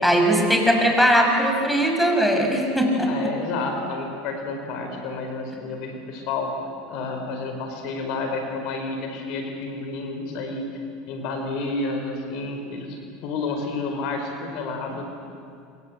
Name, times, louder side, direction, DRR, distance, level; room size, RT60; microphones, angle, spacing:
voice 1, 0.0-3.1, equal, 5° left, 2 dB, 6.0 m, -19 dB
voice 2, 3.1-10.7 11.1-15.1, left 3 dB, 60° left, 4 dB, 4.9 m, -30 dB
27.5 x 25.5 x 8.0 m, 2.4 s
hypercardioid pair, 85°, 0 cm